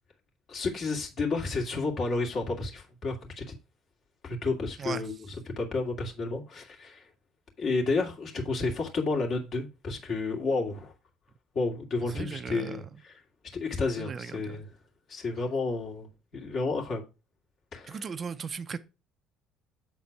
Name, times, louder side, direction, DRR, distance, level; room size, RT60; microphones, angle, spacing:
voice 1, 0.5-3.5 4.2-7.0 7.6-10.9 11.5-13.2 13.5-14.7 15.1-17.0 17.7-18.1, left 3 dB, 55° left, 2.3 m, -31 dB
voice 2, 12.1-12.8 14.0-14.6 17.9-18.8, right 6 dB, 40° right, 0.5 m, -37 dB
7.5 x 4.2 x 4.7 m
hypercardioid pair, 55°, 0 cm